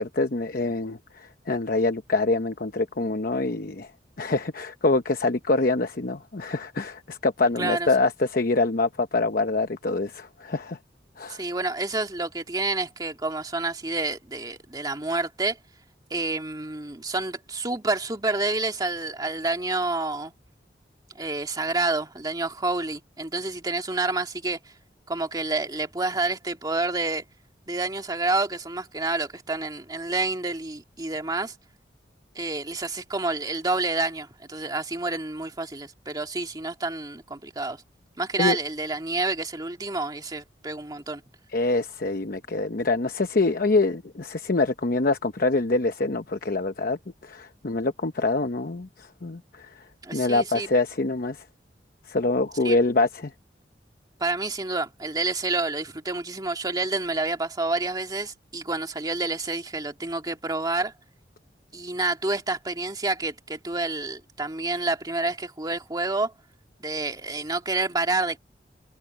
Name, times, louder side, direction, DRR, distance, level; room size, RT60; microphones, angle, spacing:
voice 1, 0.0-3.9 4.2-10.8 11.2-11.4 38.4-38.6 41.5-49.7 50.1-51.4 52.1-53.3, left 3 dB, 55° left, 0.9 m, -25 dB
voice 2, 7.6-7.9 11.3-15.6 16.1-20.3 21.2-24.6 25.1-27.2 27.7-31.5 32.4-37.8 38.2-41.2 50.0-50.7 52.6-52.8 54.2-60.9 61.7-66.3 66.8-68.4, right 2 dB, 25° right, 2.1 m, -28 dB
head